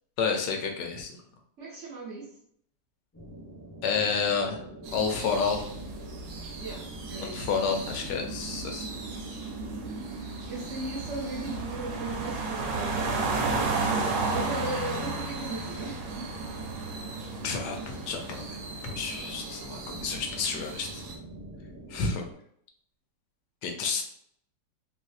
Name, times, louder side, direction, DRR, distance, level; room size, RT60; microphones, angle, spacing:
voice 1, 0.2-1.1 3.8-4.6 4.9-5.7 7.2-8.9 17.4-18.6 18.8-21.0 21.9-22.2 23.6-24.0, left 5 dB, 75° left, 3 dB, 1.1 m, -30 dB
voice 2, 1.6-2.3 6.6-7.5 10.5-13.3 14.3-16.0, right 2 dB, 60° right, -4 dB, 0.8 m, -37 dB
sound 1, 3.1-22.3, right 1 dB, 25° left, 0.3 m, -45 dB
sound 2, 4.8-21.1, right 3 dB, 75° right, 1.2 m, -34 dB
3.0 x 2.6 x 2.3 m, 0.68 s
omnidirectional pair, 1.9 m